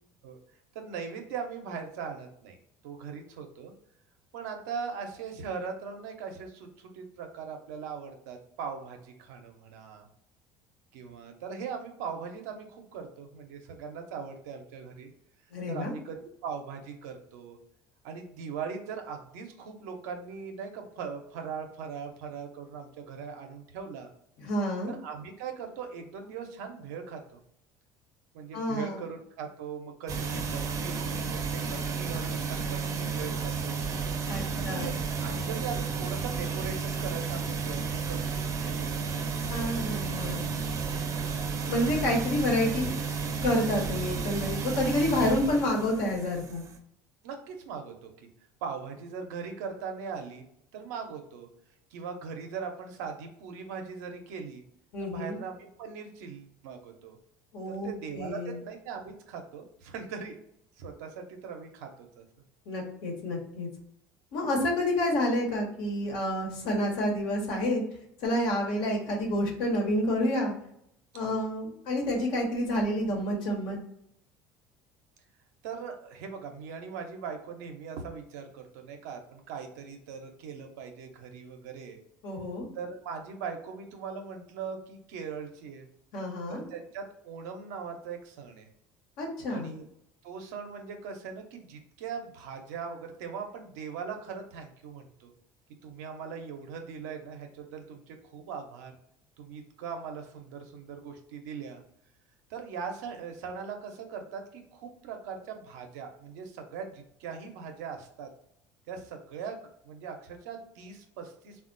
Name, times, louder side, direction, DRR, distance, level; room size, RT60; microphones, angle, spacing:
voice 1, 0.7-2.6 2.8-3.7 4.3-10.1 10.9-15.1 15.7-16.2 16.4-17.6 18.0-24.1 24.9-27.4 28.3-33.9 34.6-39.2 44.7-44.9 47.2-48.3 48.6-50.5 50.7-51.5 51.9-54.6 55.0-57.2 57.7-60.4 60.8-62.2 71.2-71.4 75.6-82.0 82.7-85.9 86.5-88.7 89.5-89.8 90.2-95.3 95.8-98.9 99.4-101.8 102.5-108.3 108.9-111.7, right 6 dB, 90° right, 4 dB, 0.6 m, -40 dB
voice 2, 15.5-15.9 24.4-24.9 28.5-29.0 34.3-34.9 39.5-40.5 41.7-42.9 43.4-46.6 54.9-55.4 57.5-58.6 62.7-63.7 64.3-67.8 68.2-70.5 71.1-73.8 82.2-82.7 86.1-86.7 89.2-89.7, left 1 dB, 75° left, 0 dB, 1.1 m, -29 dB
sound 1, 30.1-46.8, right 5 dB, 40° right, 0.6 m, -32 dB
3.5 x 2.3 x 2.5 m, 0.73 s
supercardioid pair, 105°, 8 cm